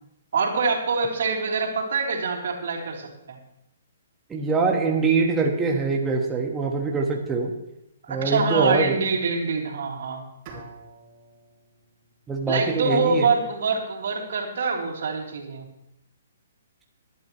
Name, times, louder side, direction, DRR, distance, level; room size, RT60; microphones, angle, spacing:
voice 1, 0.3-3.4 8.0-10.2 12.5-15.7, right 4 dB, 70° right, 0 dB, 3.2 m, -25 dB
voice 2, 4.3-7.5 8.1-9.0 12.3-13.3, right 4 dB, 10° right, 0 dB, 1.3 m, -23 dB
Bowed string instrument, 10.5-13.5, right 3 dB, 35° right, 3.5 m, -48 dB
20.0 x 11.0 x 3.1 m, 0.84 s
hypercardioid pair, 150°, 0 cm